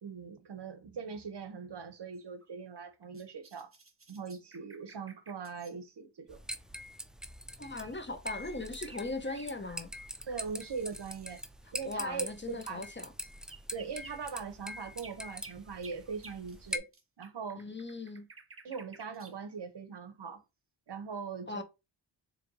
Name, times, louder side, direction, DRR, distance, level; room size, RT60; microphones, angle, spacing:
voice 1, 0.0-3.7 4.1-6.4 10.3-11.4 11.7-12.9 13.7-16.9 17.2-17.6 18.6-20.4 20.9-21.6, right 5 dB, 55° right, 0.8 m, -41 dB
Content warning, 2.1-5.7 7.3-7.4 7.7-11.5 13.2-19.4, right 4 dB, 30° right, 0.8 m, -55 dB
sound 1, 6.3-16.8, equal, ahead, 0.4 m, -44 dB
voice 2, 7.6-9.9 11.9-13.1 17.6-18.3 21.5-21.6, left 2 dB, 25° left, 0.8 m, -39 dB
4.2 x 2.9 x 2.7 m
cardioid pair, 40°, 48 cm